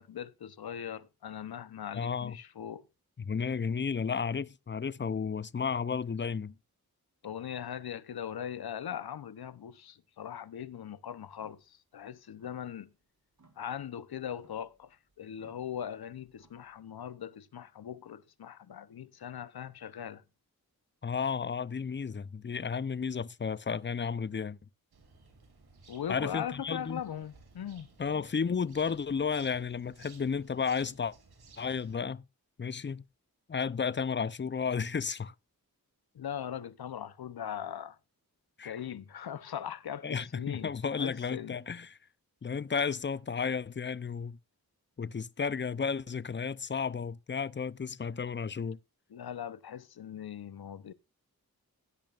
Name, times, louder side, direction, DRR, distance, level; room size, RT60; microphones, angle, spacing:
voice 1, 0.0-2.8 7.2-12.9 13.6-20.2 25.9-27.9 36.1-38.0 38.6-41.6 49.1-50.9, left 9 dB, 85° left, 0.8 m, -40 dB
voice 2, 1.9-2.4 3.2-6.5 21.0-24.6 26.1-27.0 28.0-31.1 31.6-32.2 32.6-33.0 33.5-35.3 38.6-38.8 40.0-42.0 42.4-44.4 45.0-48.8, left 6 dB, 30° left, 0.6 m, -33 dB
sound 1, 11.3-11.7 12.0-13.0 13.3-16.8, right 3 dB, 55° right, 4.4 m, -67 dB
sound 2, 24.9-32.0, right 3 dB, 90° right, 3.1 m, -58 dB
16.5 x 8.7 x 2.5 m
cardioid pair, 45°, 36 cm